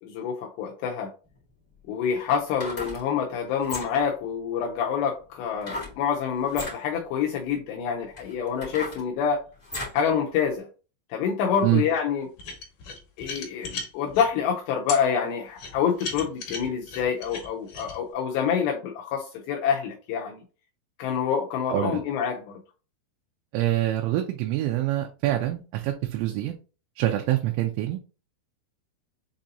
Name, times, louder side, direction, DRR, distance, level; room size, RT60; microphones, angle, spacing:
voice 1, 0.0-1.1 1.9-9.4 9.9-10.7 11.1-12.3 13.2-20.4 21.0-22.6, left 7 dB, 85° left, 2.5 m, -27 dB
sound 1, 1.3-1.4 2.4-3.0 3.6-4.1 5.6-6.0 6.4-6.8 7.5-7.6 8.1-10.0 10.5-10.6, left 2 dB, 45° left, 0.6 m, -36 dB
sound 2, 12.4-14.3 14.9-15.0 15.6-18.0, left 4 dB, 65° left, 2.2 m, -36 dB
voice 2, 21.7-22.0 23.5-26.5 27.0-28.1, right 14 dB, 80° right, 2.8 m, -25 dB
7.2 x 2.7 x 2.7 m
omnidirectional pair, 5.6 m